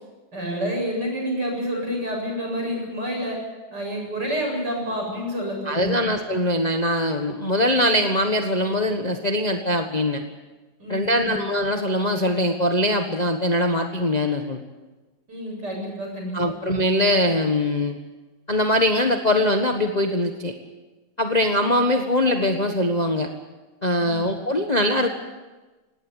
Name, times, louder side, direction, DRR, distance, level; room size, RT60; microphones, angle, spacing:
voice 1, 0.3-3.4 3.7-6.0 10.8-11.5 15.3-16.5 24.0-24.2, equal, 50° right, 0 dB, 8.3 m, -29 dB
voice 2, 5.6-10.2 10.9-14.6 16.3-18.0 18.5-20.5 21.2-23.3 23.8-25.1, left 1 dB, 25° left, 4 dB, 1.2 m, -22 dB
18.5 x 18.0 x 9.9 m, 1.2 s
omnidirectional pair, 2.3 m